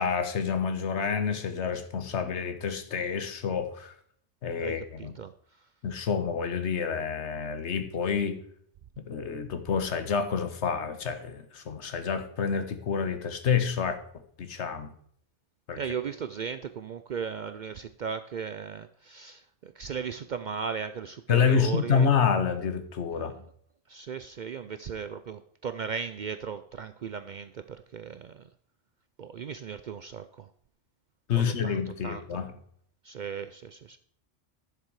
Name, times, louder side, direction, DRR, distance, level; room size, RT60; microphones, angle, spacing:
voice 1, 0.0-3.9 4.4-5.1 5.8-8.4 9.0-14.0 14.4-14.9 15.7-15.8 21.3-23.3 31.3-32.5, left 6 dB, 75° left, 10 dB, 1.3 m, -28 dB
voice 2, 4.6-5.3 15.8-22.1 23.2-23.4 23.9-28.5 29.2-30.5 31.3-32.4 33.0-34.0, right 6 dB, 60° right, 11 dB, 0.5 m, -37 dB
11.0 x 6.9 x 4.7 m, 0.63 s
omnidirectional pair, 1.2 m